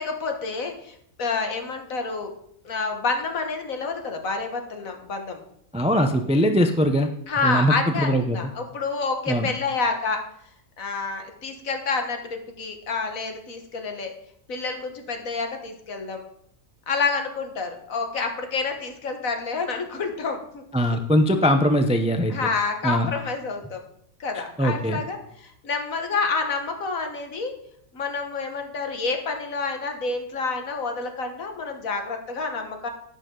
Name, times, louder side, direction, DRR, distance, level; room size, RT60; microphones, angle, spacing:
voice 1, 0.0-2.3 2.7-5.4 7.3-10.2 10.8-14.1 14.5-16.2 16.9-20.6 22.3-23.8 24.2-27.5 27.9-32.9, left 4 dB, 70° left, 4 dB, 1.7 m, -28 dB
voice 2, 5.7-7.1 7.4-8.4 9.3-9.5 20.7-22.3 22.8-23.1 24.6-25.0, equal, 10° right, 6 dB, 0.4 m, -21 dB
11.0 x 9.6 x 3.8 m, 0.71 s
omnidirectional pair, 1.5 m